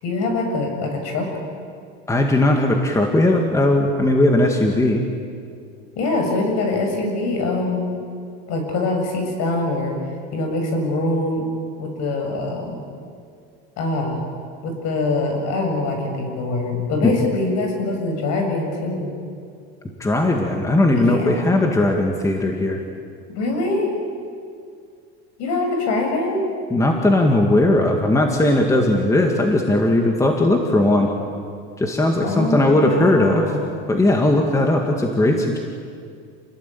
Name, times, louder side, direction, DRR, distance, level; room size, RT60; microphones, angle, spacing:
voice 1, 0.0-1.3 6.0-7.9 8.5-10.0 10.3-11.4 11.8-12.8 13.8-14.2 14.6-19.1 20.9-21.5 23.3-23.9 25.4-26.5 32.2-33.7, left 2 dB, 55° left, 3 dB, 7.3 m, -23 dB
voice 2, 2.1-5.0 17.0-17.1 20.0-22.8 26.7-31.1 31.8-33.6 33.9-35.6, left 1 dB, 10° left, 2 dB, 2.0 m, -18 dB
28.0 x 19.5 x 9.3 m, 2.3 s
supercardioid pair, 140°, 33 cm